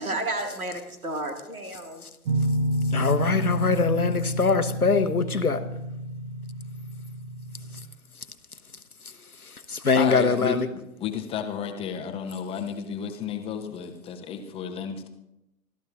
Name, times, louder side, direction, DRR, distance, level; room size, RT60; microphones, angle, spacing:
voice 1, 0.0-2.1, right 2 dB, 75° right, 2.3 m, -32 dB
sound 1, 2.3-7.8, equal, 40° right, 1.1 m, -29 dB
voice 2, 2.9-5.6 9.4-10.7, left 4 dB, 85° left, 1.1 m, -23 dB
voice 3, 10.0-15.1, left 7 dB, 15° left, 0.9 m, -32 dB
27.0 x 13.0 x 2.5 m
figure-of-eight pair, 115°, 43 cm